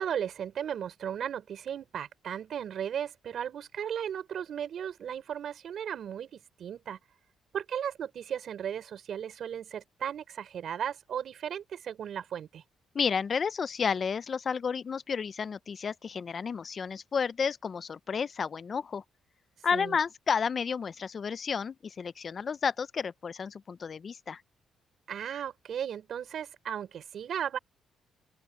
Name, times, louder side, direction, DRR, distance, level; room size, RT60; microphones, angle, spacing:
voice 1, 0.0-7.0 7.5-12.6 19.7-20.0 25.1-27.6, right 9 dB, 65° right, 5.2 m, -36 dB
voice 2, 12.9-19.0 19.6-24.4, left 6 dB, 45° left, 0.5 m, -31 dB
open air
cardioid pair, 90°, 0 cm